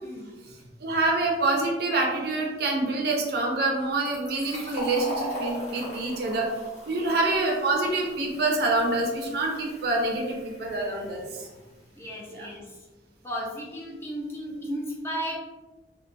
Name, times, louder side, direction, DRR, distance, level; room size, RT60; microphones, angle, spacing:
voice 1, 0.8-6.5 6.9-11.5 12.3-12.5, right 2 dB, 60° right, 0 dB, 0.5 m, -26 dB
Fill (with liquid), 3.9-11.3, left 1 dB, 35° left, 0.9 m, -39 dB
voice 2, 11.9-12.9 13.2-15.4, equal, 15° left, -3 dB, 0.4 m, -35 dB
2.7 x 2.2 x 2.5 m, 1.2 s
head